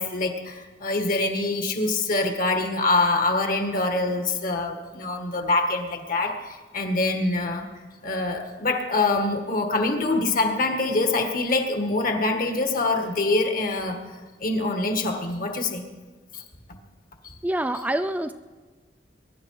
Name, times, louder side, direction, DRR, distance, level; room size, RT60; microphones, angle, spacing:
voice 1, 0.0-7.7 8.0-14.0 14.4-15.9 16.3-16.4 17.2-17.3, left 2 dB, 50° left, 5 dB, 1.8 m, -25 dB
voice 2, 17.4-18.3, right 1 dB, 10° right, 9 dB, 0.4 m, -26 dB
23.0 x 11.0 x 4.8 m, 1.3 s
head